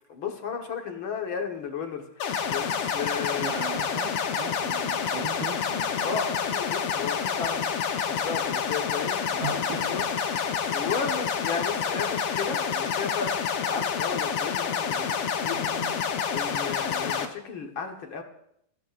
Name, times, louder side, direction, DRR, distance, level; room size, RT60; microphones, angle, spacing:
voice 1, 0.1-3.5 6.0-7.7 8.1-10.0 10.3-15.6 16.0-18.2, left 6 dB, 55° left, 3 dB, 1.5 m, -34 dB
sound 1, 2.2-17.3, left 7 dB, 85° left, 1.2 m, -28 dB
sound 2, 2.7-2.9 3.5-3.6 5.4-6.5 9.1-10.2 12.7-13.4 14.9-16.1, left 2 dB, 35° left, 1.0 m, -46 dB
voice 2, 3.4-5.6 9.4-9.8, right 8 dB, 85° right, 1 dB, 2.9 m, -38 dB
28.0 x 16.0 x 2.6 m, 0.72 s
omnidirectional pair, 4.1 m